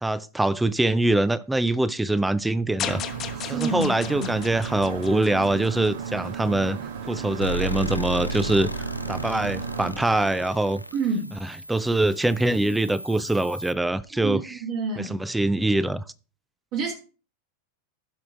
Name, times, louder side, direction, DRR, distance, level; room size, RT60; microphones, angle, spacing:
voice 1, 0.0-3.0 3.5-6.8 7.1-10.8 11.7-14.6 15.0-16.0, right 2 dB, 5° right, 0.3 m, -24 dB
sound 1, 2.8-6.1, left 9 dB, 30° left, 0.9 m, -35 dB
sound 2, 2.8-9.9, right 7 dB, 65° right, 1.2 m, -35 dB
voice 2, 3.4-4.3 10.9-11.3 14.2-15.2 16.7-16.9, right 4 dB, 40° right, 1.9 m, -28 dB
sound 3, 7.4-13.7, right 1 dB, 85° left, 0.4 m, -34 dB
16.0 x 6.2 x 2.5 m
figure-of-eight pair, 90°, 0 cm